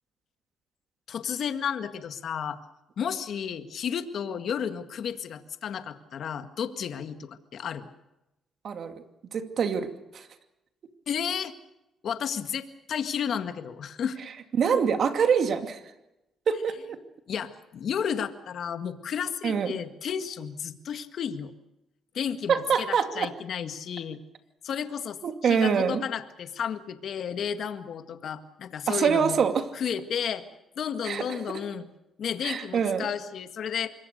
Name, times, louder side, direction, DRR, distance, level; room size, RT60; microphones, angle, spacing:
voice 1, 1.1-2.6 3.0-7.9 11.1-11.5 12.0-14.2 14.7-14.8 17.3-21.5 22.1-24.2 24.6-29.4 29.7-30.5 30.8-31.9 32.2-33.9, left 8 dB, 65° left, 9 dB, 1.8 m, -32 dB
voice 2, 8.6-8.9 9.3-10.3 14.6-15.8 16.5-17.0 19.4-19.7 22.5-23.3 25.2-26.0 28.9-29.6 31.0-31.2 32.4-33.1, right 6 dB, 60° right, 7 dB, 2.5 m, -25 dB
26.0 x 22.0 x 6.7 m, 0.94 s
cardioid pair, 90°, 0 cm